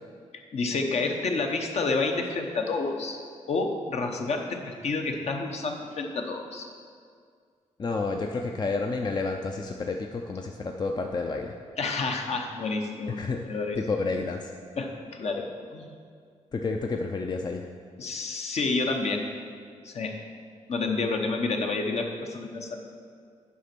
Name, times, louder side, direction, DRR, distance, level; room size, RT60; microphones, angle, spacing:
voice 1, 0.5-3.2 3.5-6.7 11.8-13.2 13.4-13.8 14.8-15.9 18.0-19.3 19.8-20.2 20.7-22.8, left 3 dB, 60° left, 3 dB, 1.0 m, -29 dB
voice 2, 7.8-11.6 13.2-13.4 13.8-14.5 16.5-17.6, left 3 dB, 35° left, 3 dB, 0.5 m, -30 dB
8.4 x 5.2 x 6.0 m, 2.1 s
cardioid pair, 85°, 13 cm